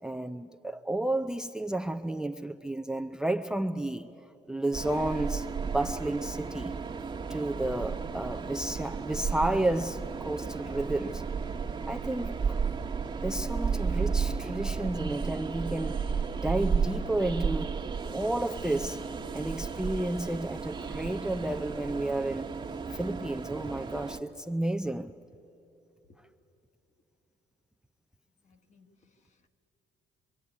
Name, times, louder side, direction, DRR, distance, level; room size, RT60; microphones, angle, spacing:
voice 1, 0.0-4.1 4.5-6.8 7.3-11.2 11.9-12.6 13.2-16.1 16.3-17.7 18.1-19.0 19.3-22.5 22.9-25.1, right 1 dB, 5° right, 0.6 m, -31 dB
Train, 4.7-24.2, right 5 dB, 25° right, 1.4 m, -33 dB
sound 1, 10.4-17.1, right 7 dB, 55° right, 1.1 m, -53 dB
voice 2, 28.4-29.5, left 4 dB, 45° left, 1.7 m, -63 dB
26.0 x 24.0 x 9.4 m
cardioid pair, 110°, 17 cm